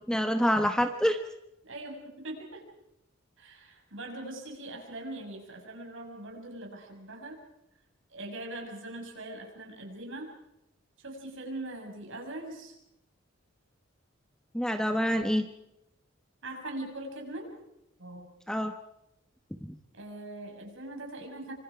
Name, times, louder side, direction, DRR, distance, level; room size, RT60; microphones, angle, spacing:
voice 1, 0.1-1.2 14.5-15.5 18.5-18.7 19.6-19.8, equal, 5° left, 6 dB, 1.0 m, -26 dB
voice 2, 1.6-2.6 3.4-7.4 8.1-10.3 11.0-12.8 16.4-17.5 18.0-18.3 19.9-21.5, right 1 dB, 70° right, 1 dB, 6.4 m, -41 dB
26.5 x 25.5 x 4.9 m, 0.85 s
head